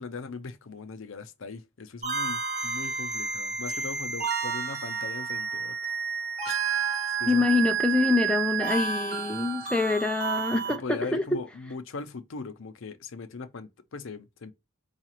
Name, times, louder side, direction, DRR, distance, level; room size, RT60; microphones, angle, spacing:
voice 1, 0.0-5.7 6.5-6.6 7.1-7.5 10.8-14.5, left 4 dB, 65° left, 0.6 m, -39 dB
sound 1, 2.0-10.8, right 6 dB, 35° right, 1.5 m, -30 dB
voice 2, 7.3-11.2, left 3 dB, 5° left, 0.3 m, -25 dB
4.8 x 2.4 x 2.9 m
head